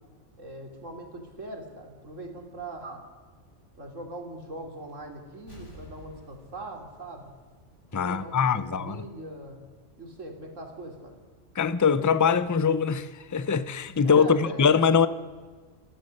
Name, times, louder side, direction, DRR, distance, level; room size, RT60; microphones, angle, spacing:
voice 1, 0.4-3.0 3.8-7.3 7.9-9.6 10.0-11.1 14.0-14.7, right 1 dB, 85° right, 3.3 m, -41 dB
Explosion, 5.5-8.1 8.4-8.5, equal, 75° left, 8.4 m, -50 dB
voice 2, 7.9-9.0 11.6-15.1, left 6 dB, 25° left, 0.4 m, -23 dB
29.0 x 15.0 x 6.5 m
omnidirectional pair, 1.3 m